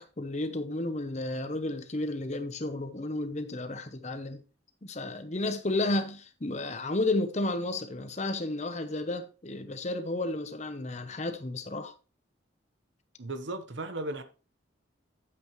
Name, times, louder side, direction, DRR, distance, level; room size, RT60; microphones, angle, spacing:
voice 1, 0.0-4.4 4.8-11.9, left 2 dB, 35° left, 0.9 m, -32 dB
voice 2, 13.2-14.2, right 2 dB, 75° right, 1.1 m, -35 dB
9.2 x 7.8 x 3.1 m
head